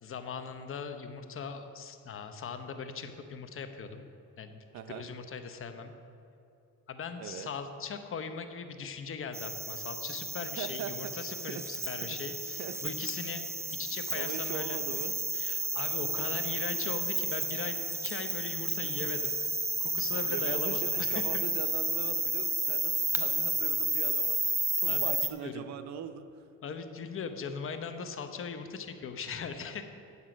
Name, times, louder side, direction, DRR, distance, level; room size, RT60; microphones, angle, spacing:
voice 1, 0.0-4.1 4.4-5.9 6.9-13.5 13.7-15.0 15.3-19.4 19.8-21.4 24.9-25.7 26.6-29.8, left 6 dB, 45° left, 8 dB, 0.9 m, -39 dB
voice 2, 4.7-5.1 7.2-7.5 10.4-10.9 11.2-11.6 12.6-12.7 14.1-15.2 18.8-19.1 20.3-24.4 24.8-26.3, right 9 dB, 65° right, 10 dB, 0.6 m, -40 dB
sound 1, 9.3-25.3, right 2 dB, 10° right, 0.5 m, -32 dB
9.6 x 7.1 x 5.1 m, 2.7 s
cardioid pair, 95°, 30 cm